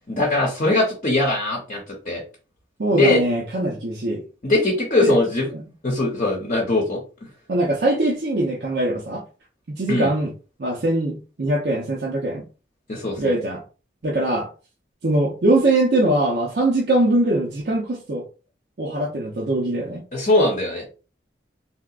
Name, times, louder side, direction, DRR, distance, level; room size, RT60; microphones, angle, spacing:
voice 1, 0.1-2.2 2.9-3.2 4.4-5.5 5.8-7.3 9.9-10.1 12.9-13.4 20.1-20.8, left 2 dB, 40° left, 0.7 m, -21 dB
voice 2, 2.8-4.2 5.0-5.1 5.5-5.6 7.5-9.2 9.7-10.3 10.6-12.4 13.2-13.6 14.0-14.5 15.0-18.2 18.8-20.0, right 1 dB, 65° right, 0.6 m, -22 dB
3.5 x 2.7 x 2.4 m
head